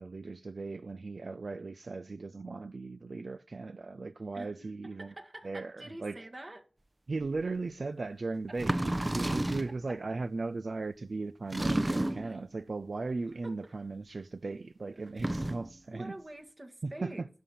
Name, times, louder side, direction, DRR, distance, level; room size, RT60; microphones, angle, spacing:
voice 1, 0.0-5.1 5.4-6.3 7.1-16.1 16.8-17.3, right 3 dB, 70° right, 0.5 m, -37 dB
voice 2, 4.3-6.7 8.5-8.6 9.3-9.5 9.9-10.0 12.2-12.4 13.2-13.6 14.9-15.3 15.9-17.2, right 1 dB, 45° right, 1.8 m, -47 dB
sound 1, 7.4-7.5 8.6-9.8 11.5-12.4 15.1-15.7, right 1 dB, 30° right, 0.8 m, -31 dB
11.0 x 5.6 x 8.5 m
cardioid pair, 40°, 0 cm